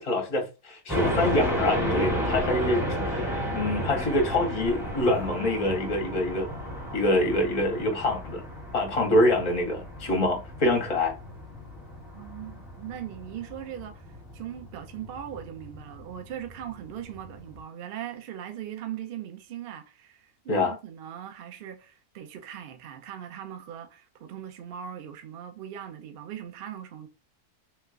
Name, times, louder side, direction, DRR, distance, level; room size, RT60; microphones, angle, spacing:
voice 1, 0.0-6.5 6.9-8.4 8.7-11.1 20.5-20.8, left 1 dB, 40° left, 0.5 m, -25 dB
sound 1, 0.9-17.6, equal, ahead, 0.7 m, -33 dB
voice 2, 12.1-14.1 14.3-27.1, right 10 dB, 65° right, 0.5 m, -40 dB
3.4 x 3.2 x 2.4 m
omnidirectional pair, 1.6 m